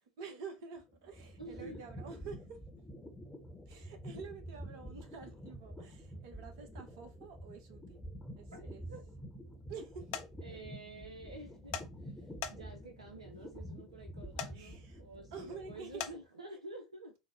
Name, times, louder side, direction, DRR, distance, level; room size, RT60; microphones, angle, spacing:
voice 1, 0.2-2.6 3.7-8.0 8.4-8.9 9.7-10.3 14.5-15.0 15.3-16.1, right 5 dB, 55° right, 0.8 m, -49 dB
sound 1, 0.8-16.2, equal, 10° left, 0.8 m, -48 dB
voice 2, 1.4-1.8 8.5-9.0 10.4-17.2, right 2 dB, 80° right, 0.5 m, -50 dB
sound 2, 10.1-10.3 11.7-11.9 12.4-12.8 14.4-14.5 16.0-16.1, left 9 dB, 50° left, 0.5 m, -38 dB
3.9 x 2.0 x 3.2 m
figure-of-eight pair, 75°, 3 cm